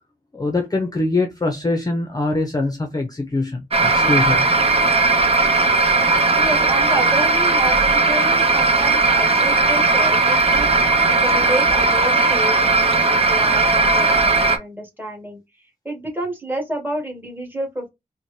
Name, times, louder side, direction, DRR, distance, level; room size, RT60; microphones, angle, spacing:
voice 1, 0.3-4.5, left 2 dB, 25° left, 0.6 m, -23 dB
sound 1, 3.7-14.6, right 3 dB, 40° right, 0.6 m, -17 dB
voice 2, 6.4-10.7 11.1-15.4 15.8-17.9, right 1 dB, 15° right, 1.8 m, -29 dB
4.0 x 2.2 x 3.1 m
wide cardioid pair, 90°, 15 cm